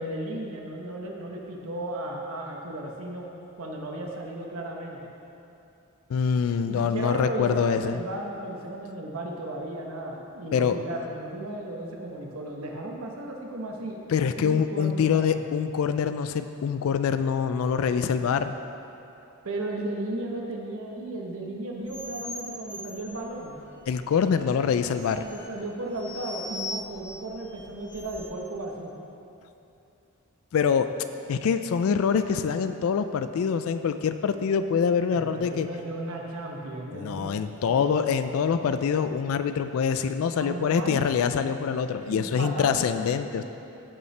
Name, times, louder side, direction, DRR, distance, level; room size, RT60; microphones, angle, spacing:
voice 1, 0.0-3.3 3.6-5.0 6.7-14.0 14.4-15.2 19.4-23.6 25.1-28.9 35.1-37.3 37.7-37.9 40.4-41.0 42.0-43.1 43.3-43.4, right 1 dB, 75° right, 0 dB, 1.0 m, -35 dB
voice 2, 6.1-8.0 10.5-10.8 14.1-18.6 23.9-25.3 30.5-30.9 31.3-35.7 36.9-43.4, left 6 dB, 70° left, 10 dB, 0.3 m, -25 dB
sound 1, 21.8-28.5, left 2 dB, 10° left, 1.7 m, -41 dB
15.5 x 5.5 x 3.3 m, 2.8 s
head